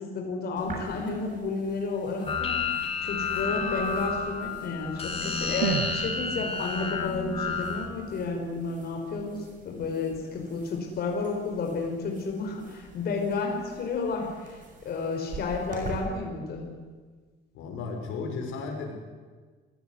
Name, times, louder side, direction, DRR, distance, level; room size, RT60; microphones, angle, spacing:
voice 1, 0.0-16.7, left 4 dB, 50° left, 2 dB, 5.4 m, -32 dB
sound 1, 0.6-16.0, right 4 dB, 40° right, 6.8 m, -47 dB
sound 2, 2.3-7.9, left 4 dB, 30° left, 3.5 m, -30 dB
sound 3, 5.6-9.6 9.9-10.0, right 10 dB, 90° right, 1.5 m, -36 dB
voice 2, 17.5-18.9, left 4 dB, 90° left, 3 dB, 6.4 m, -34 dB
28.5 x 18.5 x 9.8 m, 1.4 s
cardioid pair, 150°, 21 cm